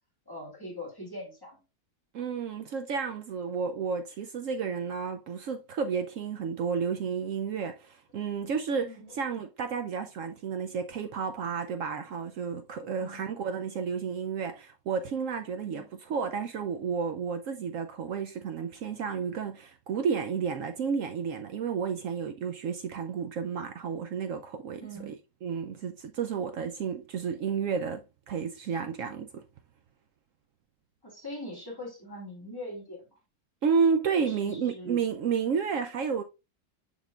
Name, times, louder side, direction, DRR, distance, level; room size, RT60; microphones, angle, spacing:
voice 1, 0.3-1.6 8.8-9.1 13.0-13.3 15.6-15.9 24.8-25.1 31.0-33.0 34.3-35.0, left 1 dB, 10° left, 2.4 m, -41 dB
voice 2, 2.1-29.4 33.6-36.2, right 6 dB, 85° right, 0.7 m, -31 dB
11.0 x 3.7 x 2.3 m
omnidirectional pair, 2.0 m